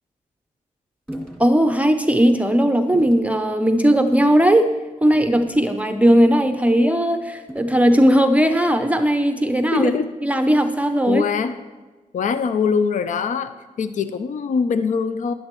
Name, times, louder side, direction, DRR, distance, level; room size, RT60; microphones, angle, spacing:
sound 1, 1.1-1.5 2.0-2.2 2.9-3.3 4.1-4.4 5.1-6.0 7.5-8.0, equal, 5° left, 2.0 m, -38 dB
voice 1, 1.4-4.6 5.0-9.9 10.2-11.2, equal, 10° right, 7 dB, 0.5 m, -17 dB
voice 2, 9.7-10.1 11.1-11.5 12.1-13.5 13.8-15.3, left 6 dB, 70° left, 11 dB, 0.5 m, -22 dB
10.5 x 10.0 x 3.0 m, 1.2 s
cardioid pair, 70°, 13 cm